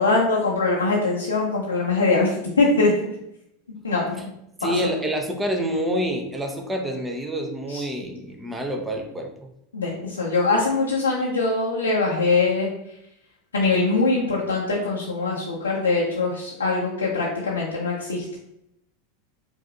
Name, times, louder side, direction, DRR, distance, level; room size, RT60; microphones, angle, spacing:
voice 1, 0.0-2.3 2.6-2.9 3.8-4.3 4.6-4.7 7.7-7.8 9.7-12.7 13.5-18.4, left 3 dB, 85° left, -5 dB, 0.7 m, -22 dB
voice 2, 4.6-9.5, equal, 10° right, 2 dB, 0.8 m, -27 dB
4.8 x 2.7 x 2.4 m, 0.79 s
figure-of-eight pair, 85°, 0 cm